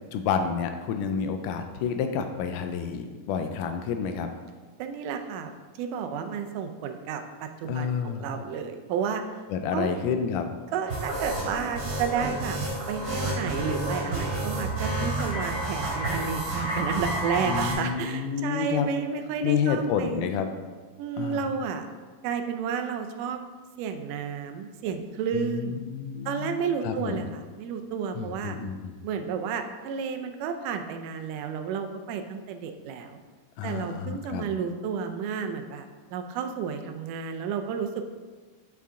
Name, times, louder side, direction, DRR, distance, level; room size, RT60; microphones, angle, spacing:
voice 1, 0.1-4.3 7.7-8.3 9.5-10.5 17.5-18.9 19.4-20.5 21.2-21.5 25.3-27.2 28.1-28.9 33.6-34.5, left 6 dB, 80° left, 7 dB, 2.1 m, -29 dB
voice 2, 4.8-5.5 5.8-9.2 9.7-9.9 10.7-12.6 12.9-20.3 21.0-21.9 22.2-23.4 23.8-25.8 26.3-28.6 29.0-33.2 33.6-35.9 36.1-38.0, right 6 dB, 85° right, 6 dB, 2.2 m, -31 dB
sound 1, 10.9-17.7, right 1 dB, 50° right, 3.5 m, -30 dB
8.4 x 5.9 x 3.7 m, 1.4 s
omnidirectional pair, 3.7 m